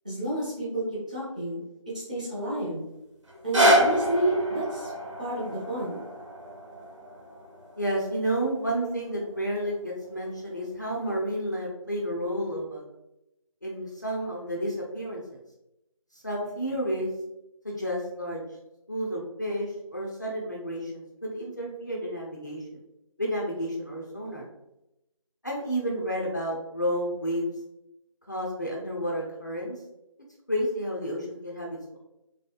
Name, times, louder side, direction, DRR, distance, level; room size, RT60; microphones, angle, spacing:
voice 1, 0.0-1.6 1.9-2.8 3.4-4.9 5.2-6.0, right 1 dB, 15° right, -10 dB, 0.6 m, -30 dB
sound 1, 3.3-9.4 10.0-10.1, equal, 60° right, 0.9 m, -27 dB
voice 2, 7.8-12.8 13.6-15.4 16.1-17.1 17.6-18.4 18.9-22.8 23.2-24.4 25.4-27.5 28.3-29.8 30.5-32.0, equal, 35° left, -2 dB, 0.4 m, -31 dB
2.9 x 2.7 x 2.3 m, 0.89 s
figure-of-eight pair, 165°, 18 cm